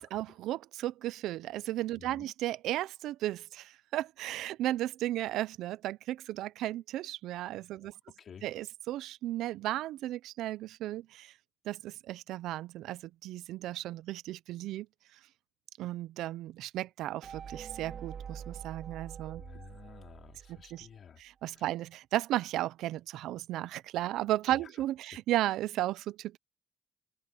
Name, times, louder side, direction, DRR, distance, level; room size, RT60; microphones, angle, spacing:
voice 1, 0.0-7.9 8.4-11.3 11.7-14.9 15.8-19.4 20.7-20.9 21.2-26.4, right 14 dB, 90° right, 0.5 m, -35 dB
voice 2, 2.0-2.3 7.8-8.5 19.4-21.2 21.5-21.7 24.5-24.8, left 7 dB, 55° left, 4.1 m, -52 dB
sound 1, 17.2-21.0, right 7 dB, 55° right, 2.5 m, -45 dB
cardioid pair, 90°, 0 cm